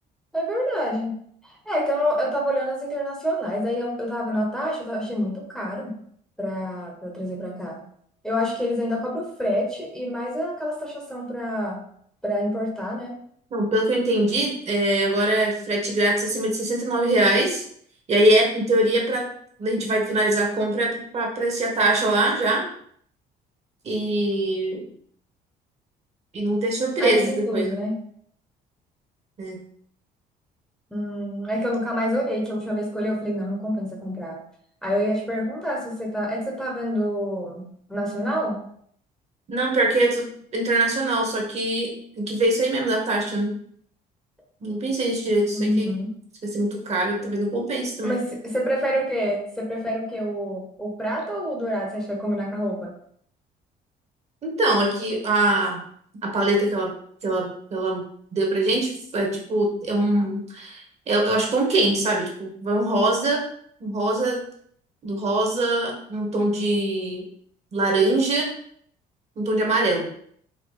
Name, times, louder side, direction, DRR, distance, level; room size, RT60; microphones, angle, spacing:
voice 1, 0.3-1.1 1.4-5.9 6.4-7.8 8.2-11.8 12.2-13.1 27.0-28.0 30.9-34.4 34.8-38.6 45.5-46.1 48.0-52.9, equal, 5° left, -2 dB, 0.8 m, -27 dB
voice 2, 13.5-17.6 18.1-19.3 19.6-22.6 23.8-24.9 26.3-27.8 29.4-29.6 39.5-40.3 40.5-43.5 44.6-45.9 46.4-48.1 54.4-55.8 56.2-56.9 57.2-58.0 58.3-63.4 63.8-64.4 65.0-67.2 67.7-68.5 69.4-70.1, right 1 dB, 40° right, 0 dB, 1.1 m, -23 dB
4.2 x 2.6 x 3.1 m, 0.64 s
cardioid pair, 110°, 17 cm